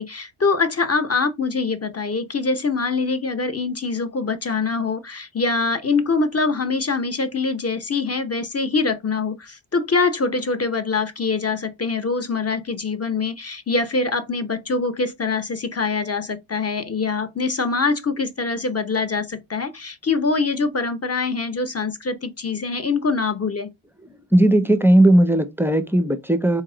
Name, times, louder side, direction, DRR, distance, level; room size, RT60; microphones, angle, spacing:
voice 1, 0.0-23.7, left 4 dB, 30° left, 0.7 m, -24 dB
voice 2, 24.3-26.6, right 1 dB, 5° right, 0.4 m, -16 dB
4.2 x 2.9 x 3.7 m
wide cardioid pair, 95°, 50 cm